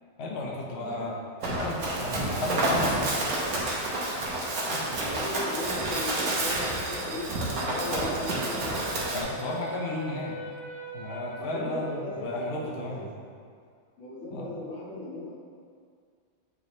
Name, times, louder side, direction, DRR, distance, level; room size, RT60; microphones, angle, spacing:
voice 1, 0.2-1.2 1.6-3.3 4.7-4.8 9.1-10.4 10.9-13.1 14.3-14.5, left 1 dB, 75° left, -3 dB, 0.6 m, -34 dB
voice 2, 0.7-1.1 2.1-2.4 4.6-9.0 11.4-13.1 14.0-15.3, left 1 dB, 35° left, -9 dB, 1.7 m, -38 dB
Run, 1.4-9.2, right 1 dB, 55° right, 1.3 m, -29 dB
sound 1, 5.6-9.8, right 4 dB, 85° right, 1.5 m, -44 dB
Wind instrument woodwind instrument, 8.6-13.0, equal, 70° right, 1.8 m, -42 dB
8.1 x 4.1 x 3.2 m, 2.2 s
omnidirectional pair, 2.2 m